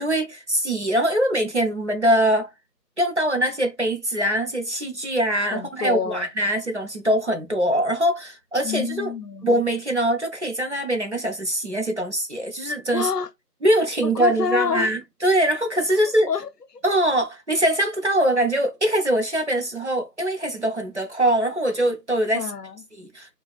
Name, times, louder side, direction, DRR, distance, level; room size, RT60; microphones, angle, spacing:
voice 1, 0.0-2.5 3.0-9.1 9.4-13.1 13.6-16.3 16.8-22.5 23.0-23.3, right 1 dB, 45° right, 0.8 m, -23 dB
voice 2, 5.5-6.3 8.6-9.5 12.9-13.3 14.0-14.9 16.3-16.8 22.3-22.8, left 6 dB, 70° left, 0.7 m, -28 dB
2.7 x 2.4 x 4.0 m
figure-of-eight pair, 175°, 50 cm